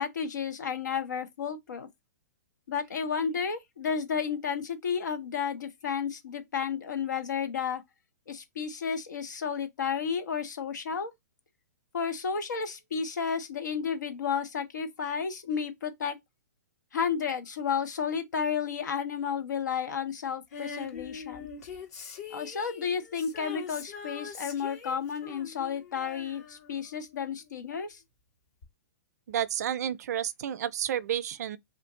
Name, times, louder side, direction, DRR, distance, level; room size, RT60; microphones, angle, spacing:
voice 1, 0.0-1.9 2.7-7.8 8.3-11.1 11.9-16.2 16.9-21.5 22.3-28.0, left 6 dB, 80° left, 0.8 m, -32 dB
Female singing, 20.5-27.5 28.6-28.7, left 6 dB, 60° left, 1.3 m, -43 dB
voice 2, 29.3-31.6, right 10 dB, 65° right, 0.4 m, -31 dB
2.7 x 2.6 x 3.5 m
hypercardioid pair, 135°, 10 cm